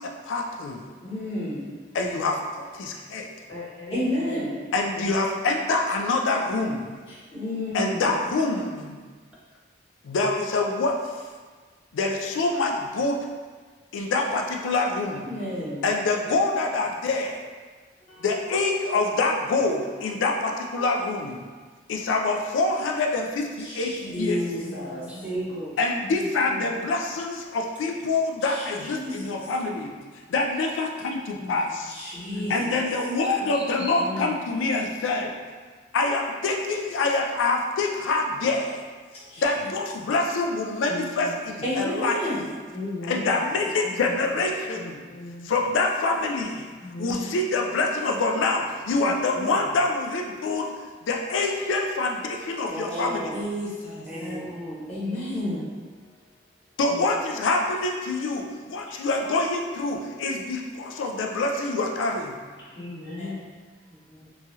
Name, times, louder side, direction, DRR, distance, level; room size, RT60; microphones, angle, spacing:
voice 1, 0.0-0.8 1.9-3.3 4.7-6.9 7.7-9.0 10.0-11.0 11.9-13.2 13.9-15.3 15.8-17.4 18.2-21.4 21.9-24.4 25.8-29.9 30.3-31.9 32.5-35.3 35.9-38.8 39.4-41.3 41.5-42.2 43.1-45.0 45.5-46.7 47.0-50.7 51.0-53.3 56.8-62.4, left 3 dB, 85° left, 2 dB, 0.4 m, -26 dB
voice 2, 1.0-1.6 3.9-4.5 7.1-8.1 13.9-14.3 15.2-15.8 18.0-18.3 18.8-19.2 19.9-20.2 20.7-21.2 23.6-25.0 28.4-29.3 31.9-32.5 39.1-39.5 41.6-42.5 52.9-54.1 54.9-55.6 55.9-56.1 63.2-63.3, left 1 dB, 30° left, -12 dB, 0.9 m, -32 dB
voice 3, 3.5-4.4 24.6-25.4 26.0-26.8 31.3-31.8 32.3-32.6 33.8-34.4 40.9-41.4 42.7-43.5 43.8-44.2 44.7-45.6 46.8-47.3 49.0-49.7 54.1-54.4 55.0-55.2 56.9-57.0 58.9-59.0 62.6-63.4, left 2 dB, 65° left, -9 dB, 1.1 m, -38 dB
voice 4, 25.2-25.7 33.4-33.9 52.6-53.4 54.1-54.9 63.9-64.3, right 1 dB, 5° right, -5 dB, 0.4 m, -35 dB
2.9 x 2.3 x 2.7 m, 1.5 s
head